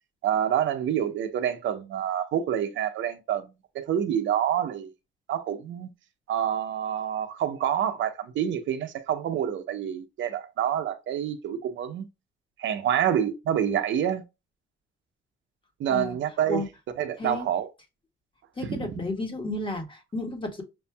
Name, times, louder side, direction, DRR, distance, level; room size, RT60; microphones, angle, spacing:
voice 1, 0.2-3.5 3.7-4.9 5.3-5.9 6.3-12.1 12.6-14.2 15.8-16.6 17.0-17.7 18.6-19.0, right 9 dB, 75° right, 0.8 m, -27 dB
voice 2, 18.6-20.6, left 2 dB, 25° left, 1.5 m, -32 dB
6.3 x 2.6 x 2.2 m
cardioid pair, 90°, 20 cm